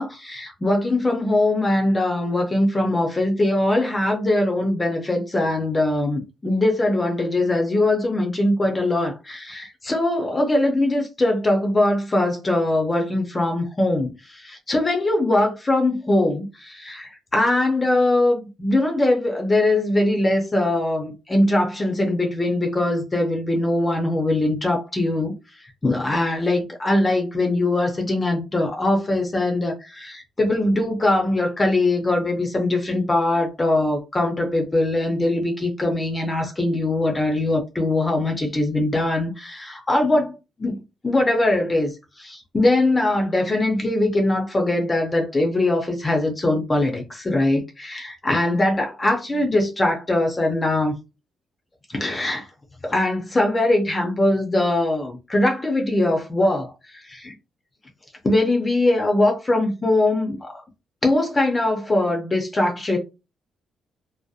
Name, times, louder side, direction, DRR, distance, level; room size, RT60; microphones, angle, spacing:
voice 1, 0.0-25.3 25.8-40.8 41.0-41.9 42.2-50.9 51.9-52.5 52.8-57.3 58.2-60.6 61.0-63.0, left 2 dB, 20° left, 0.5 m, -21 dB
2.6 x 2.0 x 2.3 m
cardioid pair, 135°, 0 cm